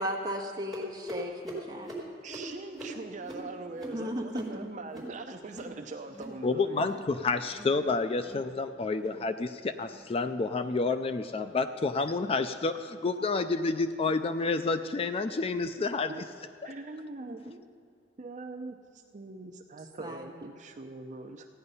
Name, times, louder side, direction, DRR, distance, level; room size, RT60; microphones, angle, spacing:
voice 1, 0.0-1.9 3.9-4.6 17.3-17.6 20.0-20.2, equal, 20° right, 0 dB, 1.5 m, -36 dB
sound 1, 0.7-5.8 6.0-6.4 6.7-7.1 7.4-7.8 8.1-8.5 8.9-9.2 9.7-10.0 10.5-10.7 11.3-11.5 12.1-12.3 13.0-13.1 13.9-14.0, right 1 dB, ahead, 3.7 m, -43 dB
voice 2, 2.2-6.9 12.4-12.5 16.1-16.3 16.6-17.4 18.2-21.5, right 3 dB, 45° right, 5 dB, 0.6 m, -42 dB
voice 3, 6.4-16.1, left 3 dB, 35° left, 10 dB, 0.4 m, -29 dB
15.0 x 9.8 x 5.5 m, 2.4 s
head